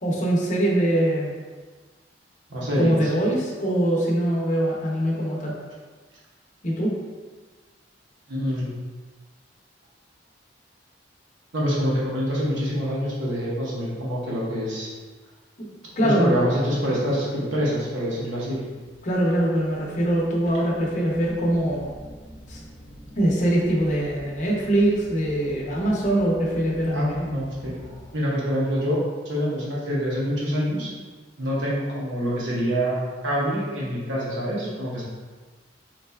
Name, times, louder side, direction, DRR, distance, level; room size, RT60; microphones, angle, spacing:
voice 1, 0.0-1.3 2.8-5.5 6.6-7.0 16.0-16.4 19.0-21.9 22.5-22.6 23.2-27.3, right 1 dB, 40° left, -3 dB, 0.7 m, -23 dB
voice 2, 2.5-3.1 8.3-8.7 11.5-14.9 16.0-18.7 26.9-27.8 28.1-29.0 29.2-30.9 31.4-35.0, equal, 85° right, -5 dB, 0.8 m, -26 dB
sound 1, 18.3-28.4, equal, 10° left, 0.8 m, -46 dB
4.0 x 3.2 x 2.2 m, 1.4 s
head